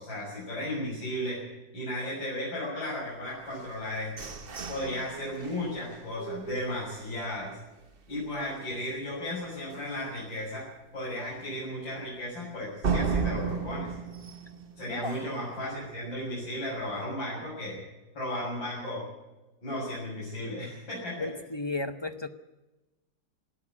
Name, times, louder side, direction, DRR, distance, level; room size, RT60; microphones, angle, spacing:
voice 1, 0.0-1.4 1.7-4.3 4.7-7.6 8.1-10.7 10.9-13.9 14.8-17.8 18.1-19.1 19.6-21.3, left 1 dB, 90° left, -7 dB, 7.8 m, -35 dB
sound 1, 3.5-7.4 7.9-8.0 8.4-8.8 9.1-9.2 9.7-9.8 12.8-15.5, right 5 dB, 35° right, 1.1 m, -34 dB
voice 2, 21.2-22.3, left 2 dB, 45° left, 10 dB, 0.3 m, -34 dB
19.5 x 13.5 x 10.0 m, 1.0 s
omnidirectional pair, 2.0 m